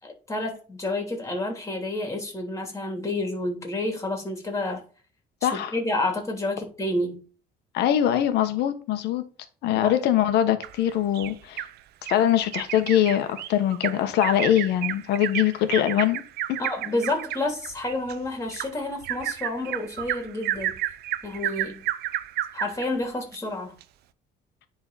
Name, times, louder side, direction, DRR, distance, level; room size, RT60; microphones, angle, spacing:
voice 1, 0.0-4.8 5.4-7.2 9.7-10.0 16.6-20.8 21.2-21.8 22.5-23.7, left 2 dB, 15° left, 3.0 m, -29 dB
voice 2, 5.4-5.7 7.7-9.2 9.6-11.6 12.0-16.2, left 11 dB, 80° left, 1.3 m, -23 dB
Bird vocalization bird call bird song, 10.6-11.7 12.1-12.2 12.5-22.9 23.3-23.4 23.8-23.9, right 13 dB, 75° right, 0.6 m, -31 dB
10.0 x 4.0 x 4.1 m
cardioid pair, 110°, 17 cm